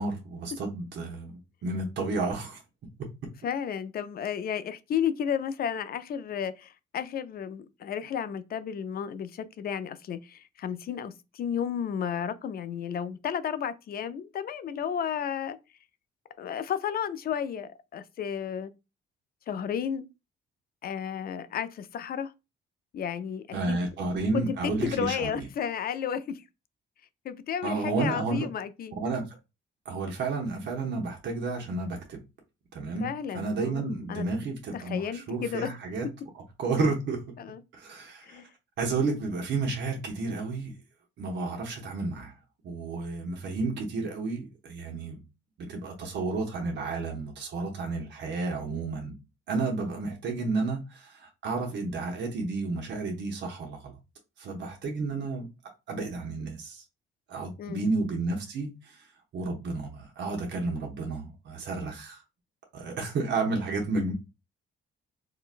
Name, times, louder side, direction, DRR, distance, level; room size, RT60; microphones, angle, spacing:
voice 1, 0.0-2.6 23.5-25.3 27.6-28.5 28.9-29.4 29.8-32.2 32.7-33.1 33.3-36.1 36.3-37.2 37.7-38.4 38.8-40.7 41.2-42.3 42.6-45.2 45.6-49.2 49.5-53.9 54.4-55.5 55.9-56.8 57.3-59.1 59.3-62.2 62.7-64.1, right 3 dB, 65° right, 0.9 m, -31 dB
voice 2, 3.4-15.6 16.4-18.7 19.5-20.1 20.8-22.3 22.9-23.9 24.3-26.4 27.2-28.9 33.0-34.3 34.7-35.7 37.4-37.6 38.2-38.5 57.6-57.9, left 8 dB, 50° left, 0.4 m, -32 dB
3.8 x 2.2 x 2.4 m
cardioid pair, 90°, 20 cm